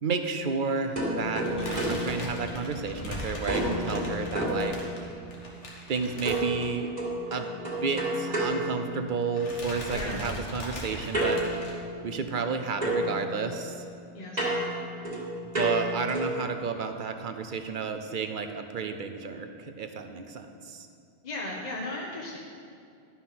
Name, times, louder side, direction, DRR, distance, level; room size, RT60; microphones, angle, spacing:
voice 1, 0.0-4.8 5.9-6.9 7.3-7.5 7.8-11.4 12.0-13.8 15.6-20.9, right 5 dB, 55° right, 7 dB, 0.7 m, -31 dB
sound 1, 1.0-3.0 3.5-5.3 6.2-9.5 11.1-12.5 12.8-16.5, right 1 dB, 35° right, 2.0 m, -31 dB
sound 2, 1.4-7.0 7.3-7.5 7.7-7.8 8.8-9.1 9.3-11.7, left 1 dB, 80° left, 1.8 m, -39 dB
voice 2, 9.9-10.2 14.1-14.6 16.2-16.4 21.2-22.4, left 2 dB, 40° left, -3 dB, 1.1 m, -36 dB
11.5 x 5.6 x 5.8 m, 2.4 s
omnidirectional pair, 1.2 m